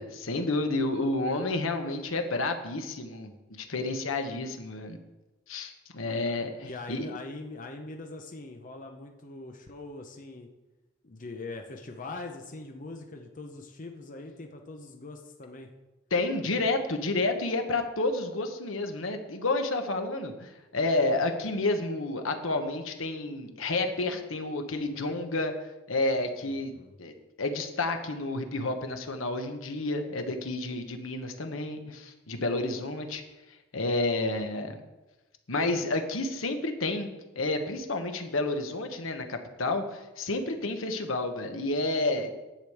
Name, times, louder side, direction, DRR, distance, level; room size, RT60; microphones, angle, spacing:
voice 1, 0.0-5.0 5.5-7.1 16.1-25.5 25.9-26.7 27.0-27.1 27.4-33.2 33.7-34.8 35.5-37.1 37.3-42.3, left 2 dB, 80° left, 6 dB, 1.1 m, -30 dB
voice 2, 6.6-10.5 11.0-15.7 26.4-27.0, left 2 dB, 40° left, 4 dB, 0.8 m, -42 dB
10.5 x 5.1 x 7.9 m, 1.1 s
head